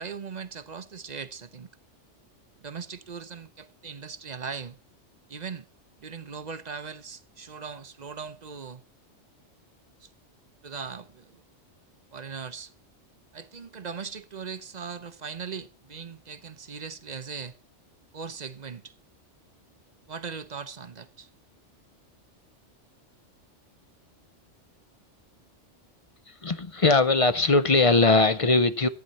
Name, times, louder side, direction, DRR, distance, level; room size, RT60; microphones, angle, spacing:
voice 1, 0.0-1.7 2.6-4.8 5.3-5.6 6.0-8.8 10.0-10.1 10.6-11.4 12.1-12.7 13.3-17.5 18.1-18.9 20.1-21.3, right 6 dB, 40° right, 0.8 m, -39 dB
voice 2, 26.3-28.9, left 3 dB, 35° left, 0.6 m, -20 dB
14.5 x 9.3 x 4.1 m
omnidirectional pair, 1.2 m